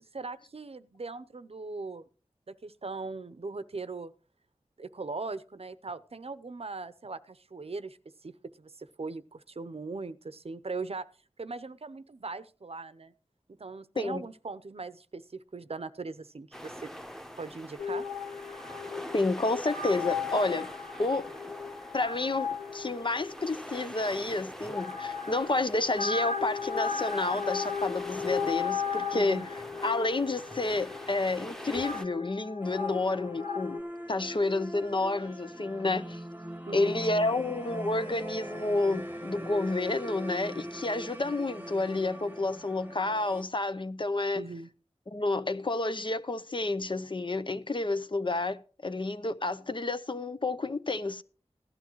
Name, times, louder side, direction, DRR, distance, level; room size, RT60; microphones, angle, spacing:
voice 1, 0.1-2.0 2.5-4.1 4.8-11.1 11.4-13.1 13.6-16.9 17.4-18.1 29.1-29.5 36.7-37.0 44.3-44.7, right 3 dB, 65° right, 0.7 m, -39 dB
sound 1, 16.5-32.0, equal, 5° left, 1.1 m, -44 dB
sound 2, 17.8-33.8, left 6 dB, 85° left, 1.3 m, -36 dB
voice 2, 19.1-20.7 21.0-21.3 21.9-33.8 34.1-36.2 36.7-44.5 45.1-51.2, left 2 dB, 50° left, 0.7 m, -30 dB
sound 3, 32.6-43.4, equal, 15° right, 1.1 m, -41 dB
16.0 x 11.5 x 3.1 m
wide cardioid pair, 50°, 11 cm